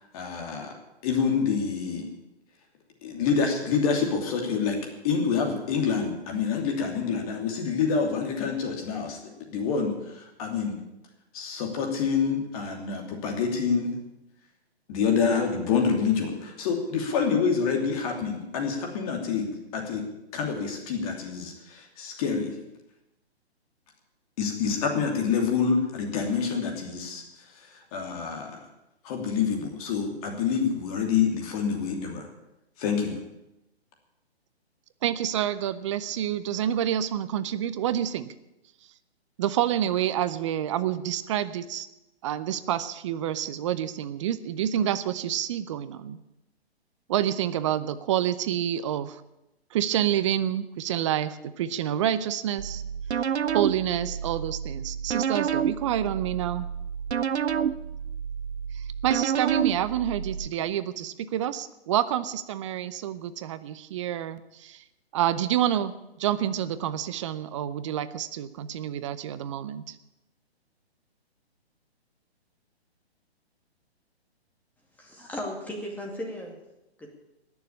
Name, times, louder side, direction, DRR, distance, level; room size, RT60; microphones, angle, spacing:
voice 1, 0.1-0.7 1.0-2.1 3.0-4.8 5.0-10.8 11.3-13.9 14.9-20.0 20.3-22.6 24.4-28.6 29.0-32.3 32.8-33.2, left 6 dB, 35° left, 2 dB, 2.8 m, -27 dB
voice 2, 35.0-38.3 39.4-41.9 42.2-46.2 47.1-49.2 49.7-52.8 53.5-56.7 58.7-64.8 65.1-69.9, right 11 dB, 30° right, 15 dB, 0.6 m, -28 dB
sound 1, 52.6-60.5, right 8 dB, 85° right, 0.7 m, -30 dB
voice 3, 75.0-76.6 77.0-77.1, left 1 dB, 5° left, -1 dB, 2.3 m, -36 dB
19.0 x 7.1 x 8.5 m, 0.93 s
figure-of-eight pair, 135°, 32 cm